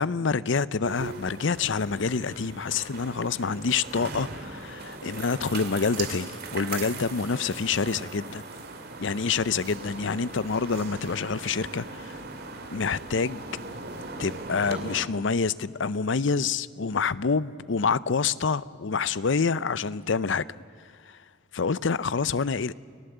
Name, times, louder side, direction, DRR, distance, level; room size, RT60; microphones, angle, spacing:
voice 1, 0.0-8.4 9.0-12.2 12.7-13.4 14.2-20.4 21.1-21.2 21.5-22.7, left 5 dB, 65° left, 0.6 m, -27 dB
sound 1, 0.8-15.0, right 3 dB, 50° right, 2.4 m, -39 dB
29.5 x 18.5 x 8.0 m
head